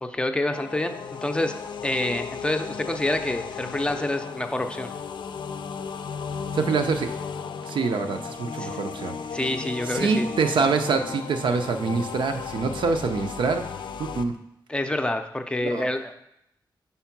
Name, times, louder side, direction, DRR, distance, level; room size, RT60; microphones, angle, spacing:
voice 1, 0.0-1.6 1.8-4.9 8.6-8.7 9.3-10.3 14.7-16.1, left 1 dB, 10° left, 6 dB, 0.4 m, -27 dB
sound 1, 0.5-14.2, left 6 dB, 75° left, 0.4 m, -35 dB
voice 2, 6.5-7.1 7.6-9.1 9.9-13.6 14.0-14.3 15.6-15.9, right 4 dB, 85° right, 6 dB, 0.6 m, -25 dB
5.5 x 4.6 x 5.9 m, 0.79 s
wide cardioid pair, 170°, 8 cm